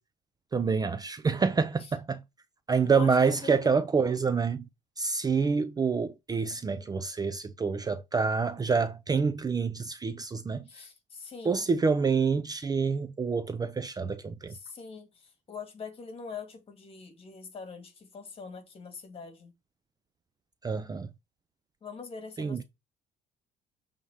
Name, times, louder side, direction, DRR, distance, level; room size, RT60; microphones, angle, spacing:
voice 1, 0.5-2.2 2.7-4.6 5.0-10.6 11.4-14.5 20.6-21.1 22.4-22.6, right 5 dB, 20° right, 0.5 m, -27 dB
voice 2, 2.8-3.2 3.4-3.8 10.7-11.7 14.5-19.5 21.8-22.6, left 5 dB, 35° left, 2.2 m, -43 dB
6.9 x 3.6 x 4.9 m
cardioid pair, 110°, 17 cm